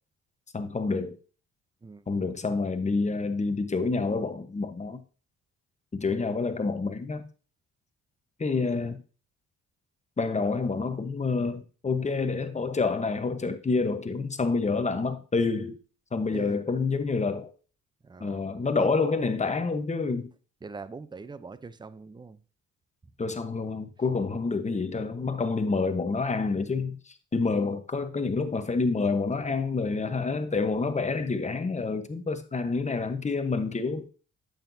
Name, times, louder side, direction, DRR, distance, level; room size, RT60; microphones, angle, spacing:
voice 1, 0.5-1.2 2.1-5.0 5.9-7.3 8.4-9.0 10.2-15.8 16.1-17.5 18.2-20.3 23.2-34.1, left 4 dB, 25° left, 1.0 m, -28 dB
voice 2, 16.3-16.7 18.0-18.5 18.7-18.9 20.6-22.4, right 4 dB, 15° right, 0.6 m, -42 dB
8.8 x 8.1 x 2.7 m
cardioid pair, 90°, 30 cm